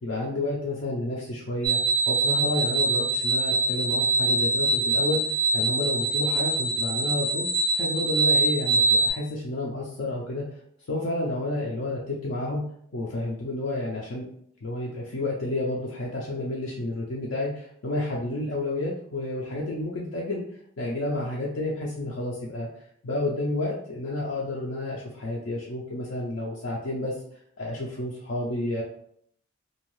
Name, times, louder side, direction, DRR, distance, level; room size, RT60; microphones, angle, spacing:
voice 1, 0.0-5.2 5.5-7.5 7.7-10.5 10.9-12.6 12.9-14.3 14.6-20.4 20.8-22.7 23.0-27.1 27.6-28.8, left 2 dB, 55° left, -3 dB, 0.4 m, -30 dB
sound 1, 1.6-9.1, right 2 dB, 5° left, 0.5 m, -24 dB
2.6 x 2.3 x 3.1 m, 0.67 s
head